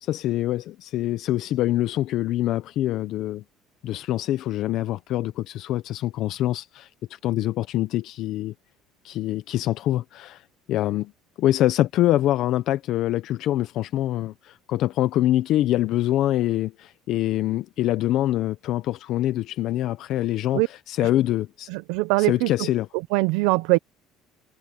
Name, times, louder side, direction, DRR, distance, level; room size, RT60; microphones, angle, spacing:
voice 1, 0.0-3.4 3.8-8.5 9.0-11.1 11.4-20.6 20.9-21.7 22.2-22.9, left 14 dB, 60° left, 0.6 m, -25 dB
voice 2, 21.7-22.7 23.1-23.8, right 23 dB, 90° right, 0.6 m, -22 dB
cardioid pair, 135°, 0 cm